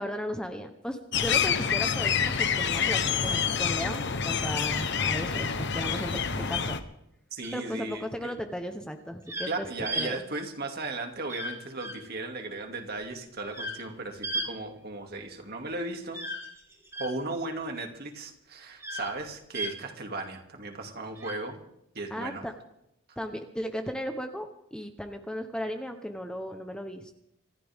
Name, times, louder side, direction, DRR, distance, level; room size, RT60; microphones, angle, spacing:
voice 1, 0.0-6.7 7.5-9.7 10.0-10.2 22.1-22.5 23.2-27.2, equal, 5° left, 6 dB, 1.0 m, -36 dB
sound 1, 1.1-6.8, left 7 dB, 60° left, 1.2 m, -27 dB
voice 2, 7.3-8.3 9.5-16.2 17.0-21.6 21.9-22.4 23.1-23.2, right 2 dB, 50° right, 3 dB, 2.5 m, -36 dB
sound 2, 7.4-7.9 9.3-9.5 9.8-10.1 11.3-11.5 11.8-11.9 13.5-13.8 14.2-14.5 16.1-17.1 18.8-19.1 19.5-19.7 21.2-21.4, right 1 dB, 15° right, 3.6 m, -34 dB
26.0 x 14.0 x 3.7 m, 0.80 s
head